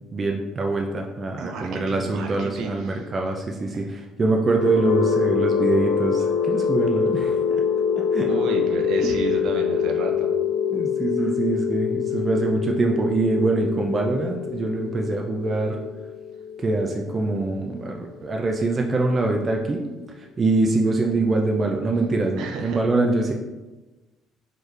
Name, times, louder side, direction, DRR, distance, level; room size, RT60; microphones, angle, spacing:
voice 1, 0.1-7.6 8.0-8.3 10.7-15.8 16.6-19.9 20.4-23.3, right 3 dB, 25° right, 1 dB, 0.4 m, -24 dB
voice 2, 1.4-3.1 3.7-3.9 8.3-10.3 21.1-21.3 22.4-22.8, right 3 dB, 65° right, 3 dB, 0.7 m, -31 dB
sound 1, 4.4-18.2, left 7 dB, 80° left, 0.5 m, -25 dB
4.5 x 3.1 x 3.2 m, 1.2 s
cardioid pair, 140°, 0 cm